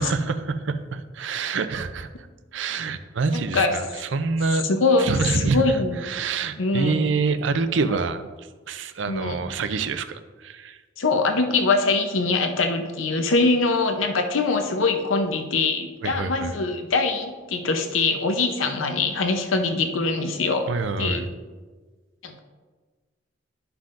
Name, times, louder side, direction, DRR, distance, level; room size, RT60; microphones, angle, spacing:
voice 1, 0.0-2.3 2.5-4.6 5.0-10.8 16.0-16.6 20.7-21.3, right 4 dB, 70° right, 11 dB, 0.5 m, -26 dB
voice 2, 3.3-3.7 4.6-5.1 5.4-6.0 6.6-7.1 7.9-8.0 9.1-9.4 11.0-20.7 21.0-21.2 22.2-22.4, left 3 dB, 90° left, 5 dB, 0.7 m, -23 dB
11.5 x 5.7 x 2.5 m, 1.4 s
head